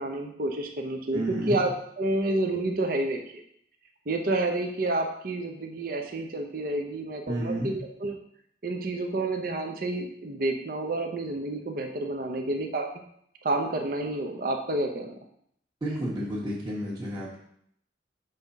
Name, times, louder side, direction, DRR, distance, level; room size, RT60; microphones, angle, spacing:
voice 1, 0.0-1.7 2.0-3.2 4.1-8.1 8.6-12.9 13.4-15.1, right 2 dB, 55° right, 3 dB, 0.7 m, -29 dB
voice 2, 1.1-1.6 7.3-7.7 15.8-17.4, right 1 dB, 25° right, -9 dB, 1.3 m, -31 dB
5.5 x 3.5 x 5.4 m, 0.69 s
head